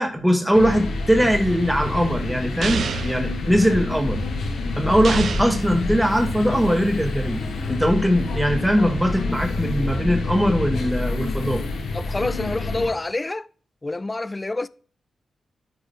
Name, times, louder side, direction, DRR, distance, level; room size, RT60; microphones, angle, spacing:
voice 1, 0.0-4.2 4.8-11.6, equal, 10° right, 1.9 m, -21 dB
sound 1, 0.5-12.9, left 2 dB, 80° left, 1.7 m, -27 dB
sound 2, 2.6-3.2 5.0-5.6, right 6 dB, 70° right, 0.4 m, -27 dB
voice 2, 11.9-13.5 13.8-14.7, left 2 dB, 30° left, 0.4 m, -27 dB
12.5 x 4.9 x 2.2 m
supercardioid pair, 40°, 0 cm